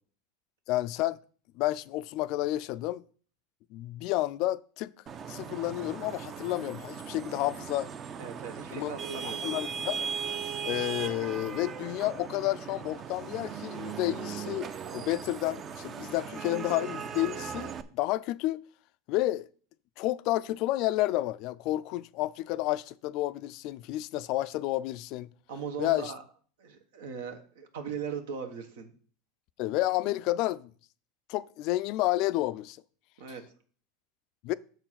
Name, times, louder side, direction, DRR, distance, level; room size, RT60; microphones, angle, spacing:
voice 1, 0.7-1.2 1.5-3.0 3.7-4.9 5.3-7.9 8.7-8.9 9.2-10.1 10.6-18.6 19.1-19.5 20.0-25.3 25.8-26.1 29.6-30.7 31.3-32.8 34.4-34.5, left 16 dB, 55° left, 0.3 m, -30 dB
Vehicle horn car horn honking / Traffic noise roadway noise, 5.1-17.8, right 7 dB, 35° right, 0.6 m, -38 dB
voice 2, 8.2-9.5 25.5-26.2 26.6-28.9 33.2-33.5, right 6 dB, 80° right, 1.4 m, -39 dB
6.7 x 4.5 x 5.9 m
supercardioid pair, 115°, 0 cm